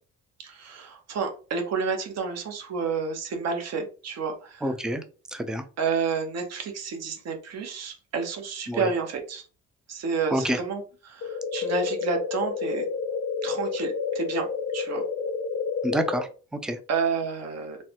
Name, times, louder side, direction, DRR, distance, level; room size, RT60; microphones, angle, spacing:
voice 1, 0.4-4.7 5.8-9.5 9.9-12.8 13.4-15.0 16.9-17.8, right 5 dB, 60° right, 4 dB, 0.9 m, -30 dB
voice 2, 4.6-5.0 5.3-5.6 8.7-8.9 10.3-10.6 15.8-16.8, right 1 dB, ahead, 8 dB, 0.3 m, -28 dB
sound 1, 11.2-16.2, left 5 dB, 60° left, 0.7 m, -30 dB
3.1 x 2.1 x 2.8 m, 0.37 s
cardioid pair, 90°, 30 cm